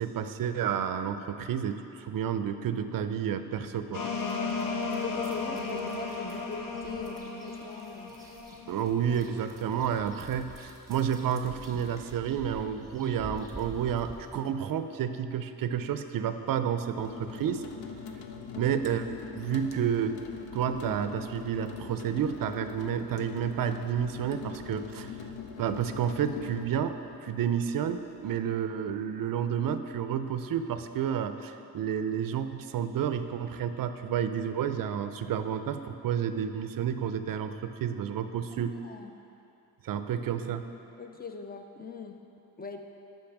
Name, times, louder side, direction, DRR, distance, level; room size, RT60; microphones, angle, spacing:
voice 1, 0.0-4.1 8.7-17.6 18.6-20.2 20.5-25.2 25.6-27.0 27.2-38.7 39.8-40.7, right 8 dB, 60° right, 9 dB, 0.5 m, -30 dB
sound 1, 3.9-9.4, left 4 dB, 60° left, 0.9 m, -35 dB
sound 2, 4.1-14.3, right 2 dB, 10° right, 1.0 m, -49 dB
voice 2, 5.0-8.1 18.5-18.8 38.6-39.1 41.0-42.2 42.6-42.8, left 5 dB, 25° left, 5 dB, 0.5 m, -41 dB
sound 3, 16.9-28.4, left 6 dB, 80° left, 0.6 m, -42 dB
5.3 x 5.3 x 5.8 m, 2.8 s
cardioid pair, 75°, 39 cm